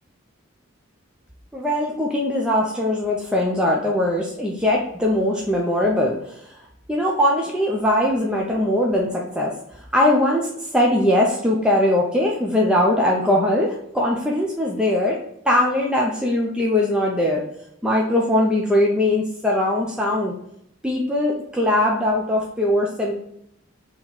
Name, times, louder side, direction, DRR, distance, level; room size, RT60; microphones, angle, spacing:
voice 1, 1.5-6.6 6.9-9.5 9.9-15.2 15.5-17.4 17.8-20.3 20.8-23.1, left 1 dB, 5° right, -2 dB, 0.4 m, -21 dB
4.0 x 2.9 x 4.4 m, 0.74 s
head